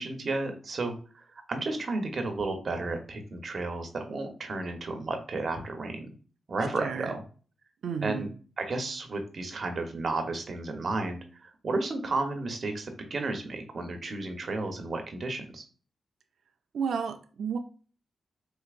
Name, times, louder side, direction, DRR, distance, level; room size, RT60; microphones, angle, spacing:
voice 1, 0.0-6.1 6.5-7.2 8.0-8.3 8.6-15.6, right 3 dB, 55° right, 5 dB, 0.9 m, -33 dB
voice 2, 6.8-7.1 7.8-8.3 16.7-17.6, right 6 dB, 80° right, 6 dB, 0.4 m, -32 dB
4.6 x 2.8 x 2.4 m, 0.39 s
cardioid pair, 70°, 0 cm